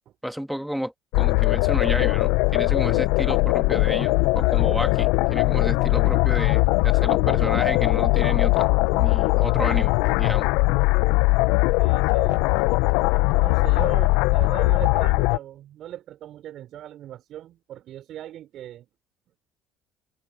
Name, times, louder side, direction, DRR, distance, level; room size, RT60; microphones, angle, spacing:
voice 1, 0.2-8.7 8.9-10.5, equal, ahead, 2.8 m, -31 dB
sound 1, 1.1-15.4, left 24 dB, 70° left, 1.1 m, -20 dB
voice 2, 11.8-12.7 13.3-18.9, right 12 dB, 55° right, 6.0 m, -39 dB
hypercardioid pair, 65°, 0 cm